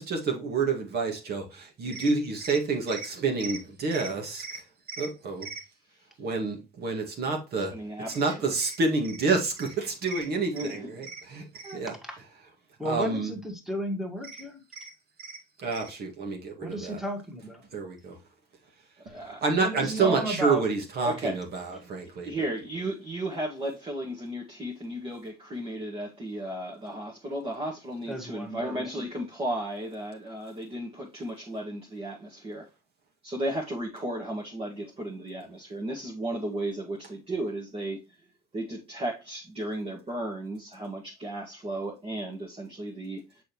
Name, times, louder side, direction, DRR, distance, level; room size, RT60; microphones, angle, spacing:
voice 1, 0.0-4.6 4.9-5.6 6.2-7.7 8.1-11.9 12.8-13.3 14.7-14.9 15.2-17.0 17.7-18.2 19.4-22.3, right 4 dB, 55° right, 2.0 m, -29 dB
voice 2, 7.7-8.5 10.5-11.1 11.6-11.8 19.1-19.4 19.8-20.2 21.0-21.4 22.0-32.7 33.2-38.2 38.5-43.4, right 1 dB, 30° right, 1.8 m, -34 dB
voice 3, 12.8-14.6 16.6-17.6 19.1-19.2 19.6-20.7 28.1-29.0, equal, ahead, 1.9 m, -34 dB
6.4 x 5.1 x 3.0 m
supercardioid pair, 80°, 19 cm